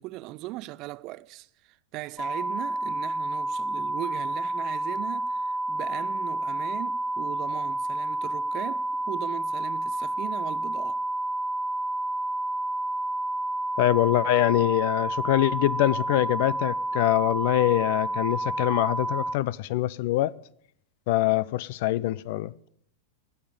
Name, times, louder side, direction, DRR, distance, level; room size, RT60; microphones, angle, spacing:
voice 1, 0.0-11.0, right 18 dB, 40° right, 0.6 m, -39 dB
sound 1, 2.2-19.3, right 2 dB, 5° left, 0.8 m, -30 dB
voice 2, 13.8-20.3 21.1-22.5, left 15 dB, 50° left, 0.5 m, -24 dB
18.5 x 6.7 x 9.2 m
figure-of-eight pair, 90°, 0 cm